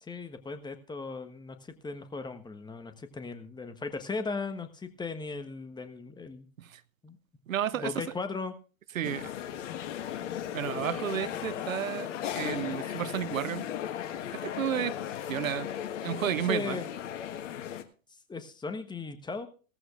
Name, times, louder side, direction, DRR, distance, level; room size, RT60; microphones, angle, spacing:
voice 1, 0.0-6.5 7.0-7.2 7.7-8.5 16.5-16.9 18.3-19.5, left 4 dB, 10° left, 8 dB, 1.3 m, -37 dB
voice 2, 7.5-7.9 8.9-9.3 10.5-12.1 12.3-13.7 14.4-15.0 15.3-15.7 16.0-16.8, right 10 dB, 75° right, 16 dB, 0.8 m, -32 dB
sound 1, 9.0-17.8, left 10 dB, 60° left, 1.4 m, -36 dB
17.0 x 14.5 x 2.5 m, 0.36 s
figure-of-eight pair, 95°, 41 cm